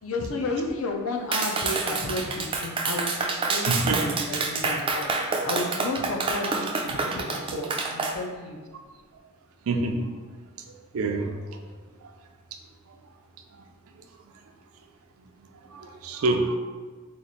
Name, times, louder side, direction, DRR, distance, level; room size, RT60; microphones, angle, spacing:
voice 1, 0.0-8.6, left 2 dB, 75° left, 2 dB, 0.6 m, -32 dB
Clapping, 1.3-8.2, right 3 dB, 25° right, 0.3 m, -27 dB
voice 2, 3.7-4.2 9.7-10.1 10.9-11.3 15.7-16.6, right 2 dB, 85° right, 4 dB, 0.5 m, -26 dB
3.1 x 2.4 x 4.0 m, 1.4 s
head